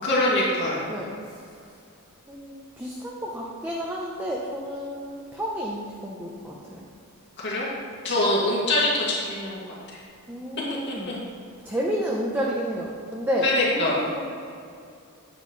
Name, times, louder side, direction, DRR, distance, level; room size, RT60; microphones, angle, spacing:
voice 1, 0.0-0.8 7.4-7.7 8.0-9.6 11.1-11.2 13.4-14.0, left 1 dB, 50° left, -6 dB, 2.4 m, -23 dB
voice 2, 0.9-1.4 2.3-6.9 10.3-11.2 11.6-14.2, equal, 10° right, -3 dB, 0.8 m, -31 dB
9.6 x 9.3 x 3.3 m, 2.4 s
head